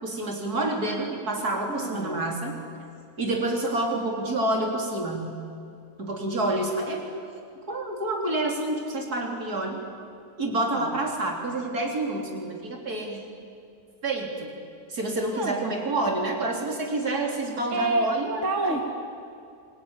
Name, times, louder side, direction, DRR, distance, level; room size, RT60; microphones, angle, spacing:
voice 1, 0.0-2.5 3.2-5.4 6.0-7.1 7.7-9.8 10.4-13.2 14.0-14.6 14.9-18.8, right 2 dB, 90° right, 1 dB, 4.2 m, -28 dB
voice 2, 1.7-2.2 10.5-11.0 15.3-15.8 17.7-18.8, right 3 dB, 55° right, 3 dB, 2.0 m, -29 dB
27.0 x 21.0 x 9.8 m, 2.4 s
omnidirectional pair, 1.6 m